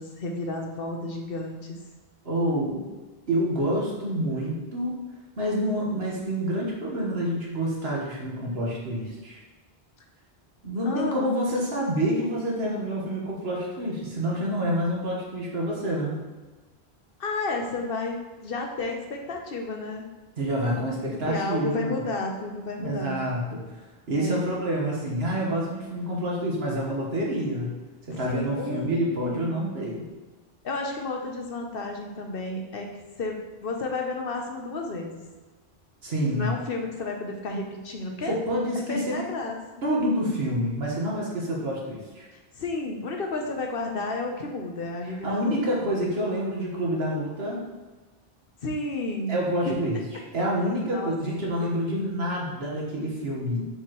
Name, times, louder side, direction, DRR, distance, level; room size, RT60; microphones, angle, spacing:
voice 1, 0.0-1.8 10.8-11.4 17.2-20.1 21.2-23.2 24.1-24.5 28.2-29.6 30.6-32.9 33.2-35.2 36.3-38.3 38.7-39.6 42.3-45.6 48.6-49.8 50.9-51.2, left 2 dB, 65° left, 2 dB, 1.0 m, -32 dB
voice 2, 2.2-2.9 3.3-5.0 5.4-9.4 10.6-16.2 20.4-22.0 22.8-23.6 24.1-27.7 28.0-30.0 36.0-36.5 38.3-39.2 39.8-42.3 45.2-47.6 49.3-50.0 50.3-53.7, equal, 75° right, -3 dB, 1.6 m, -27 dB
6.5 x 4.9 x 3.0 m, 1.3 s
omnidirectional pair, 1.0 m